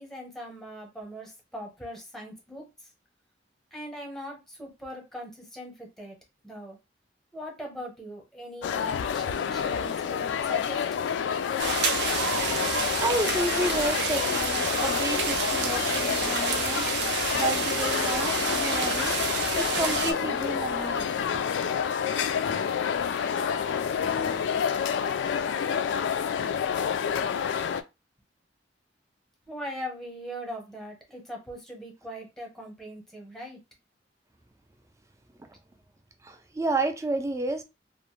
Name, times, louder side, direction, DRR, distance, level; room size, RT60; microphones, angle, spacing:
voice 1, 0.0-2.7 3.7-6.2 6.4-6.8 7.3-10.8 29.5-33.6, equal, ahead, 0.8 m, -40 dB
sound 1, 8.6-27.8, left 7 dB, 80° left, 0.3 m, -28 dB
sound 2, 11.6-20.1, right 5 dB, 70° right, 0.5 m, -29 dB
voice 2, 13.0-19.2 19.5-22.2 35.4-35.5 36.2-37.6, right 2 dB, 15° right, 0.4 m, -31 dB
Wind instrument woodwind instrument, 14.8-25.4, left 3 dB, 90° right, 0.9 m, -44 dB
2.4 x 2.1 x 3.0 m
head